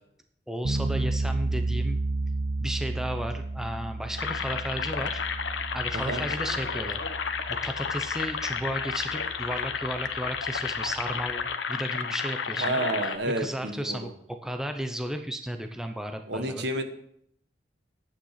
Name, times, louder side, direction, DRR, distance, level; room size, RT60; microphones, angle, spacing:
voice 1, 0.5-2.0 2.6-5.2 5.7-7.0 7.3-12.8 13.4-16.7, equal, 5° right, 6 dB, 0.7 m, -34 dB
sound 1, 0.6-11.5, right 2 dB, 55° right, 0.6 m, -33 dB
sound 2, 4.2-13.2, left 6 dB, 85° left, 0.9 m, -32 dB
voice 2, 12.6-14.1 16.3-16.8, right 1 dB, 70° right, 7 dB, 1.4 m, -30 dB
10.0 x 8.9 x 5.8 m, 0.69 s
head